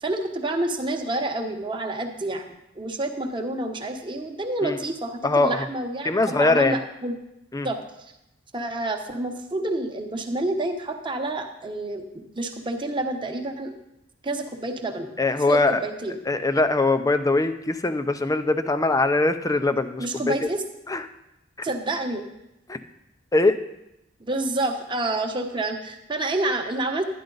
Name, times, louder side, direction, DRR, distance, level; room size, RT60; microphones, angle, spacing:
voice 1, 0.0-2.4 2.7-7.2 7.6-7.8 8.5-13.7 14.2-15.1 15.5-16.2 20.0-20.6 21.6-22.3 24.2-27.1, right 2 dB, 25° right, 4 dB, 1.0 m, -28 dB
voice 2, 5.2-5.7 6.0-6.8 7.5-7.7 15.2-15.8 16.3-20.5 20.9-21.0 22.7-22.8 23.3-23.6, left 2 dB, 20° left, 10 dB, 0.5 m, -22 dB
12.0 x 10.0 x 3.9 m, 0.88 s
head